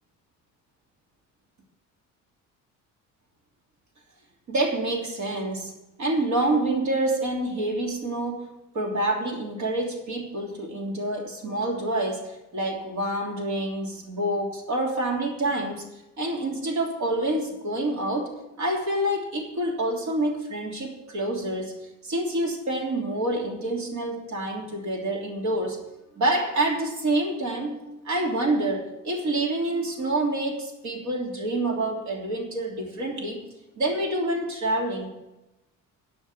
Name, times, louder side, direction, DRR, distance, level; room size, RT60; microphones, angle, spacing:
voice 1, 4.5-5.7 6.0-8.5 8.7-15.8 16.2-21.8 22.0-25.8 26.2-33.4 33.8-35.1, right 1 dB, 65° right, -1 dB, 3.1 m, -27 dB
12.5 x 5.6 x 8.3 m, 0.97 s
cardioid pair, 125°, 30 cm